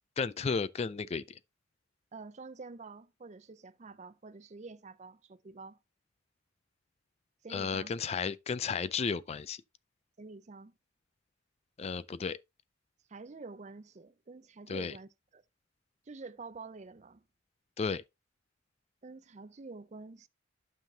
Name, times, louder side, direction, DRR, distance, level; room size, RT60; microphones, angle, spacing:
voice 1, 0.2-1.2 7.5-9.6 11.8-12.4 14.7-14.9 17.8-18.0, left 5 dB, 30° left, 0.3 m, -33 dB
voice 2, 2.1-5.8 7.4-7.9 10.2-10.7 13.1-15.4 16.1-17.2 19.0-20.3, right 3 dB, 35° right, 0.5 m, -48 dB
12.0 x 5.7 x 2.8 m
head